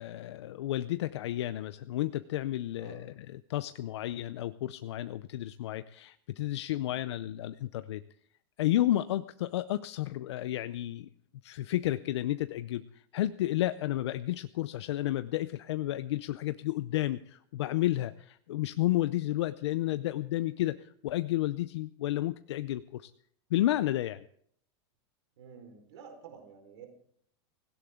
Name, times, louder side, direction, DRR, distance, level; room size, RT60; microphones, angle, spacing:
voice 1, 0.0-8.0 8.6-11.1 11.4-23.1 23.5-24.2, left 14 dB, 75° left, 12 dB, 0.6 m, -32 dB
voice 2, 2.8-3.1 6.8-7.2 25.4-26.9, right 6 dB, 75° right, 4 dB, 4.5 m, -50 dB
18.0 x 16.5 x 3.7 m, 0.63 s
supercardioid pair, 175°, 14 cm